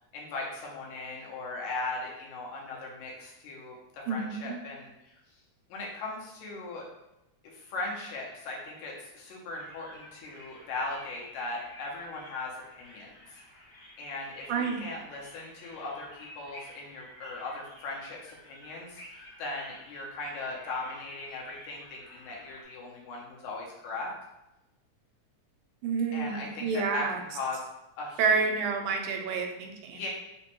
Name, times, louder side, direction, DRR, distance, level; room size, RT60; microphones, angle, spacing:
voice 1, 0.1-5.1 5.7-6.8 7.4-13.1 14.0-24.1 26.1-27.0 27.3-27.6 28.0-28.2 29.9-30.1, left 3 dB, 80° left, -2 dB, 2.0 m, -38 dB
voice 2, 4.1-4.6 14.5-14.9 25.8-27.2 28.2-30.0, right 5 dB, 85° right, 3 dB, 2.0 m, -29 dB
sound 1, 9.6-22.6, left 1 dB, 50° left, 1.1 m, -52 dB
4.9 x 2.1 x 3.0 m, 0.91 s
omnidirectional pair, 3.4 m